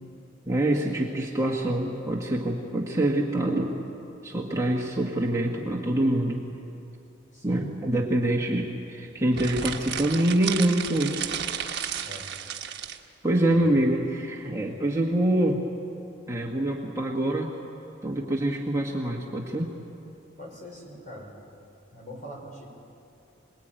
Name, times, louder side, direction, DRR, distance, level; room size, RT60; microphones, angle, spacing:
voice 1, 0.5-3.7 4.2-6.4 7.4-11.3 13.2-15.6 16.3-17.5 18.0-19.7, right 1 dB, 15° right, -2 dB, 1.7 m, -25 dB
voice 2, 7.3-7.7 12.0-12.3 13.5-13.7 20.4-21.4 21.9-22.7, equal, 40° left, -1 dB, 5.7 m, -43 dB
sound 1, 9.3-13.0, right 8 dB, 55° right, 1.4 m, -33 dB
26.0 x 20.5 x 9.1 m, 2.7 s
head